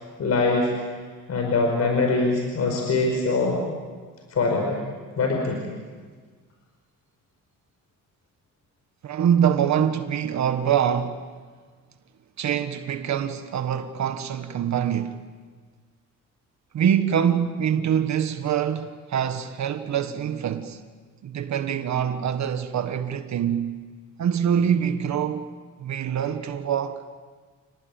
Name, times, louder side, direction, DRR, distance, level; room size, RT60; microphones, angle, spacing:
voice 1, 0.2-0.7 1.3-3.6 4.3-4.8 5.2-5.6, left 3 dB, 50° left, 5.1 m, -23 dB
voice 2, 9.0-11.2 12.4-15.2 16.7-20.8 21.2-23.8 24.2-25.5 25.8-27.0, right 8 dB, 55° right, 1.5 m, -24 dB
29.5 x 19.0 x 9.2 m
cardioid pair, 120°, 33 cm